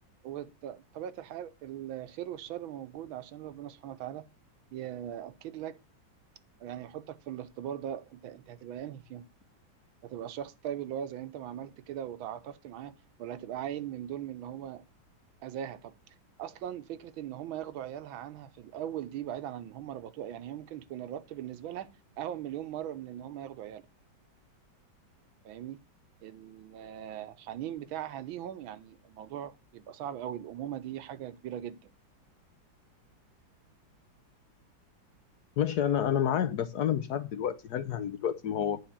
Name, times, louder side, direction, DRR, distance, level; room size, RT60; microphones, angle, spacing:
voice 1, 0.2-4.2 4.7-5.8 6.6-9.2 10.0-14.8 15.4-23.9 25.4-25.8 26.2-31.9, right 11 dB, 90° right, 1.6 m, -40 dB
voice 2, 35.6-38.8, left 9 dB, 65° left, 1.0 m, -29 dB
9.2 x 3.9 x 7.1 m
omnidirectional pair, 2.2 m